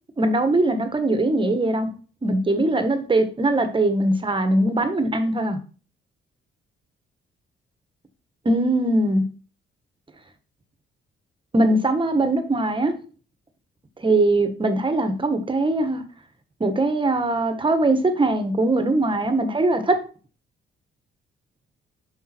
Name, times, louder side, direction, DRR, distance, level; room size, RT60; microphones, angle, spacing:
voice 1, 0.2-1.9 2.2-5.6 8.4-9.2 11.5-12.9 14.0-16.0 16.6-20.0, right 2 dB, 25° right, 1.4 m, -21 dB
7.3 x 5.2 x 4.4 m
cardioid pair, 90°, 20 cm